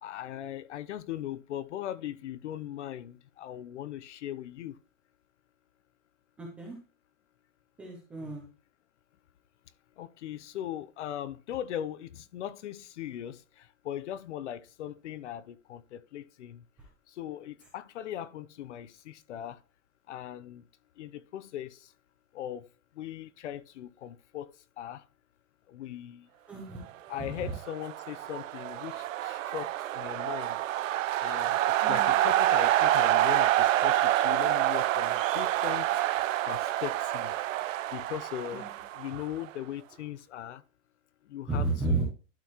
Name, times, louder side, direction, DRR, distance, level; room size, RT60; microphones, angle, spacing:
voice 1, 0.0-4.8 8.2-8.4 10.0-16.6 17.1-19.6 20.1-20.7 21.0-21.9 22.3-22.7 22.9-25.1 25.7-26.3 27.1-30.6 31.2-38.7 38.9-40.6 41.2-42.1, left 11 dB, 60° left, 0.7 m, -39 dB
voice 2, 6.4-6.8 7.8-8.5 26.5-26.8 31.8-32.1 38.5-38.6 41.5-42.1, right 3 dB, 5° right, 0.4 m, -31 dB
sound 1, 27.5-39.5, right 14 dB, 80° right, 0.7 m, -27 dB
12.0 x 4.5 x 2.9 m
supercardioid pair, 175°, 39 cm